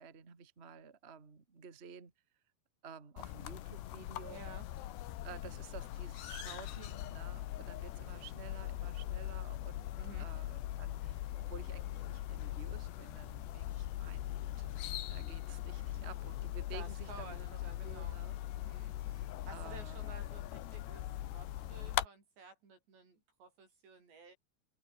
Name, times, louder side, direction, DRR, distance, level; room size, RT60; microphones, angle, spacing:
voice 1, 0.0-2.1 2.8-4.4 5.2-9.9 10.2-14.8 15.1-18.4 19.2-20.2, right 6 dB, 25° right, 1.4 m, -52 dB
sound 1, 3.2-22.1, left 14 dB, 80° left, 3.5 m, -41 dB
voice 2, 4.3-4.6 10.0-10.3 15.7-15.9 16.7-18.2 18.6-24.4, right 4 dB, 90° right, 10.0 m, -54 dB
open air
omnidirectional pair, 4.9 m